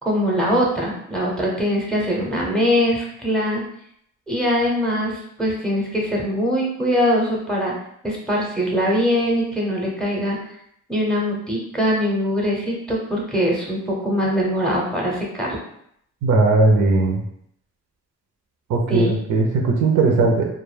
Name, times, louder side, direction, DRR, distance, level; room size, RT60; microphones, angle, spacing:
voice 1, 0.0-3.6 4.3-7.7 8.0-10.4 10.9-15.6 18.9-19.2, equal, ahead, -2 dB, 0.7 m, -22 dB
voice 2, 16.2-17.2 18.7-20.5, right 3 dB, 75° right, 1 dB, 0.6 m, -18 dB
2.2 x 2.0 x 3.2 m, 0.71 s
cardioid pair, 90°, 30 cm